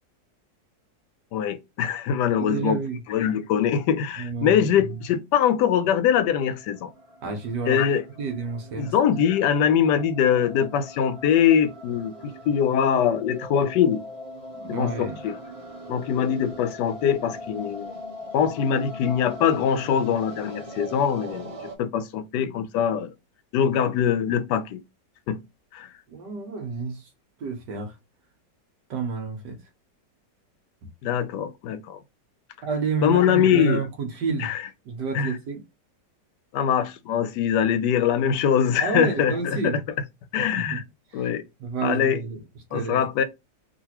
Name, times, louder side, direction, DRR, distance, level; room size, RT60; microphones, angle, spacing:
voice 1, 1.3-2.8 3.1-6.9 7.7-8.0 8.8-14.0 14.7-15.4 15.9-17.9 18.3-23.1 23.5-24.8 25.3-25.4 25.7-25.9 31.0-32.0 33.0-33.8 34.4-34.6 35.1-35.3 36.5-39.8 40.3-40.8 41.1-41.4 41.8-42.2 42.7-43.2, left 8 dB, 75° left, 1.2 m, -23 dB
voice 2, 2.4-3.0 4.2-5.0 7.2-7.8 8.2-8.9 14.5-15.2 26.1-27.1 27.4-28.0 28.9-29.6 32.6-34.5 34.8-35.6 38.8-39.8 40.4-40.8 41.1-41.3 41.6-42.4 42.7-43.0, right 5 dB, 70° right, 1.5 m, -30 dB
sound 1, 6.3-21.8, equal, 45° right, 0.4 m, -41 dB
3.8 x 2.5 x 2.8 m
omnidirectional pair, 1.9 m